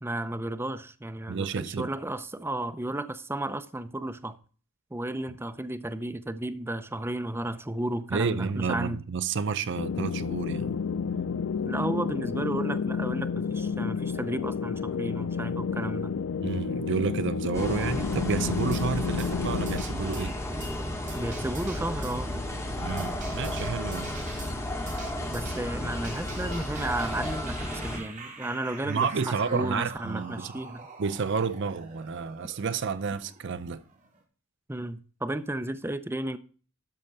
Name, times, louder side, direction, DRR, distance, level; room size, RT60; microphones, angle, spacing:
voice 1, 0.0-4.4 4.9-9.0 11.7-16.2 21.1-22.3 25.3-30.9 34.7-36.4, right 1 dB, 10° right, 0.6 m, -33 dB
voice 2, 1.3-1.9 8.1-10.8 16.4-20.3 22.8-24.2 28.8-30.5 31.0-33.8, right 5 dB, 60° right, 0.6 m, -30 dB
sound 1, 9.8-19.8, left 6 dB, 75° left, 0.4 m, -30 dB
sound 2, 17.5-28.0, left 1 dB, 15° left, 2.2 m, -33 dB
sound 3, 18.7-18.8 19.2-19.3 19.7-20.3 20.6-20.7 21.1-22.2 23.0-24.5 24.9-25.6 26.0-34.2, right 4 dB, 40° right, 2.3 m, -45 dB
12.5 x 4.4 x 6.6 m
head